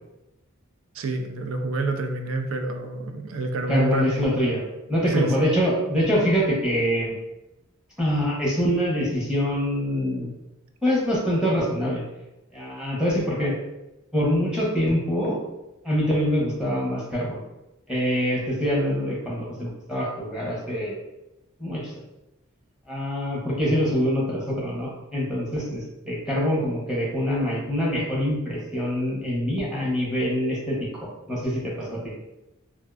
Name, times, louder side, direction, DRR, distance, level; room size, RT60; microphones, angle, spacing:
voice 1, 0.9-4.3 5.1-5.5, right 3 dB, 75° right, 5 dB, 0.4 m, -28 dB
voice 2, 3.7-4.6 4.9-7.1 8.0-10.3 10.8-12.0 12.5-13.5 14.1-15.4 15.8-17.4 17.9-21.0 21.6-21.9 22.9-30.9 31.3-32.1, equal, 5° right, -5 dB, 0.8 m, -24 dB
3.5 x 2.4 x 2.3 m, 0.94 s
head